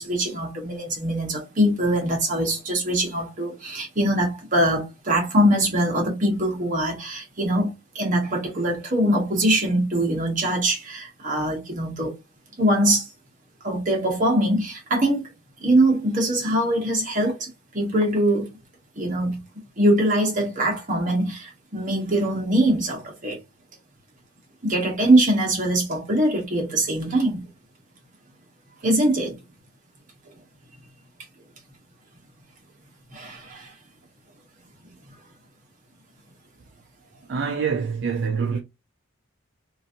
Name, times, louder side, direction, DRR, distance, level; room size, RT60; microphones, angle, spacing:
voice 1, 0.0-12.1 12.6-13.1 13.6-15.3 15.6-18.5 19.0-19.4 19.8-23.4 24.6-27.4 28.8-29.4 33.1-33.7, right 1 dB, 35° right, 1.1 m, -22 dB
voice 2, 37.3-38.6, right 6 dB, 55° right, 0.4 m, -25 dB
3.0 x 2.5 x 2.6 m
head